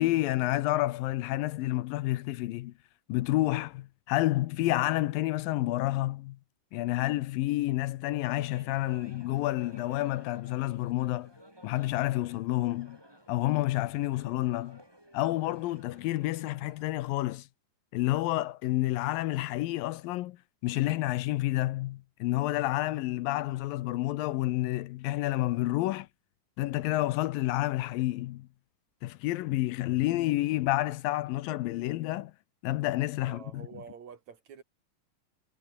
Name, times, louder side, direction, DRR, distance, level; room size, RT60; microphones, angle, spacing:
voice 1, 0.0-2.7 3.1-6.4 6.7-11.3 11.6-13.0 13.3-14.8 15.1-17.5 17.9-20.4 20.6-26.1 26.6-28.5 29.0-32.3 32.6-33.7, left 17 dB, 80° left, 2.5 m, -29 dB
sound 1, 8.3-16.9, equal, 5° right, 7.4 m, -55 dB
voice 2, 33.2-34.6, right 7 dB, 55° right, 3.3 m, -47 dB
omnidirectional pair, 4.2 m